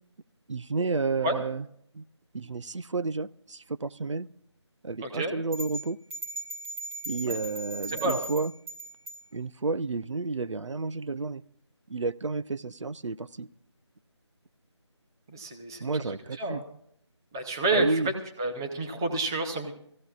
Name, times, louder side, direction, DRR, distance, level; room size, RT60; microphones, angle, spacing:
voice 1, 0.5-1.7 1.9-2.0 2.3-4.3 4.8-6.0 7.1-8.5 9.3-11.4 11.9-13.5 15.8-16.6 17.7-18.1, right 3 dB, 80° right, 15 dB, 0.7 m, -31 dB
voice 2, 5.0-5.3 7.2-7.3 7.9-8.2 15.3-16.7 17.3-18.1 18.4-19.7, right 2 dB, 10° right, 3 dB, 0.6 m, -29 dB
sound 1, 5.5-9.2, right 2 dB, 25° right, 5.5 m, -38 dB
24.0 x 15.5 x 2.4 m, 0.67 s
figure-of-eight pair, 170°, 15 cm